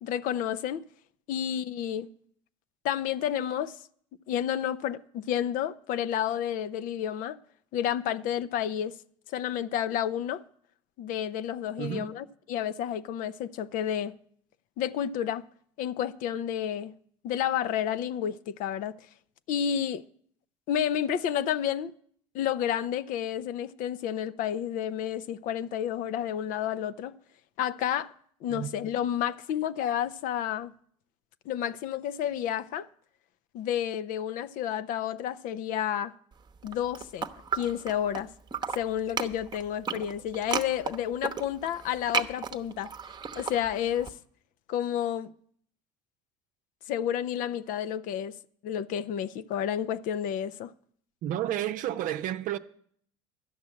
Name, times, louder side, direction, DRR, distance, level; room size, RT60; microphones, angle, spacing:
voice 1, 0.0-0.8 1.3-2.1 2.8-3.8 4.3-7.4 7.7-9.0 9.3-10.4 11.0-14.1 14.8-15.5 15.8-16.9 17.2-18.9 19.5-20.0 20.7-21.9 22.3-27.1 27.6-28.1 28.4-30.7 31.5-32.9 33.5-36.1 36.6-38.3 38.7-42.9 43.4-44.1 44.7-45.3 46.9-48.4 48.6-50.7, left 10 dB, 60° left, 0.6 m, -30 dB
voice 2, 11.8-12.1 28.5-28.7 51.2-52.6, right 12 dB, 60° right, 0.7 m, -31 dB
sound 1, 36.6-38.2 38.5-44.1, right 6 dB, 25° right, 0.9 m, -34 dB
12.5 x 6.3 x 9.6 m
hypercardioid pair, 80°, 16 cm